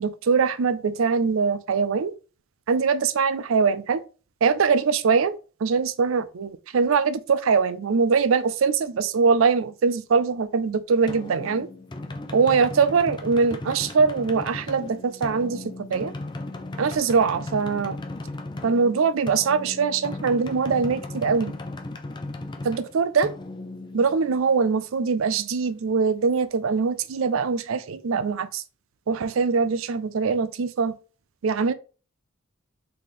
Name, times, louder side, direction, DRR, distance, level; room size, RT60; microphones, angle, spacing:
voice 1, 0.0-2.1 2.7-4.0 4.4-5.3 5.6-11.7 12.3-15.6 15.9-16.1 16.8-18.0 18.6-21.5 22.6-23.3 23.9-28.6 29.1-30.9 31.4-31.7, right 5 dB, 70° right, 0.4 m, -22 dB
sound 1, 11.1-24.6, left 2 dB, 20° left, 0.4 m, -36 dB
4.1 x 3.2 x 3.7 m
head